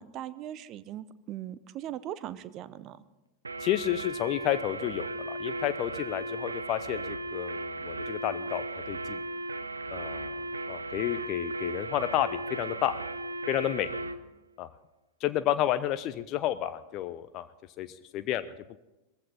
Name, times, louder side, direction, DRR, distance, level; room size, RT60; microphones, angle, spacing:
voice 1, 0.0-3.0, right 12 dB, 35° right, 15 dB, 0.7 m, -39 dB
sound 1, 3.4-14.2, right 2 dB, 75° right, 0.6 m, -36 dB
voice 2, 3.6-9.2 9.9-12.9 13.5-13.9 14.6-14.7 15.2-17.5 17.8-18.8, left 12 dB, 40° left, 13 dB, 0.5 m, -31 dB
19.0 x 15.0 x 4.1 m, 1.0 s
figure-of-eight pair, 90°, 0 cm